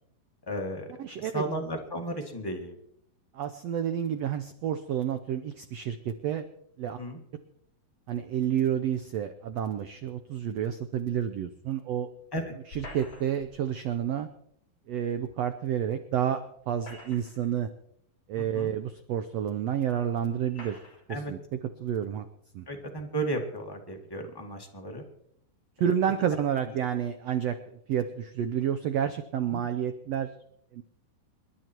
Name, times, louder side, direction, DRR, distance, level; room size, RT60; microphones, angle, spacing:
voice 1, 0.5-0.8 1.2-2.8 7.0-7.2 12.3-12.4 18.4-18.7 21.1-21.3 22.7-25.0 29.5-29.6, right 1 dB, 15° left, 1 dB, 0.8 m, -34 dB
voice 2, 1.0-1.5 3.3-6.5 6.8-7.0 8.1-12.1 12.7-14.3 14.9-17.7 18.3-20.8 21.1-21.4 21.8-22.3 22.5-22.6 25.8-30.3 30.7-30.8, right 9 dB, 90° right, 9 dB, 1.4 m, -30 dB
sound 1, 12.7-13.5 15.2-15.3 16.6-17.5 18.4-18.5 19.4-19.5 20.5-21.0, left 2 dB, 35° left, 6.7 m, -46 dB
27.0 x 11.0 x 4.6 m, 0.69 s
omnidirectional pair, 4.1 m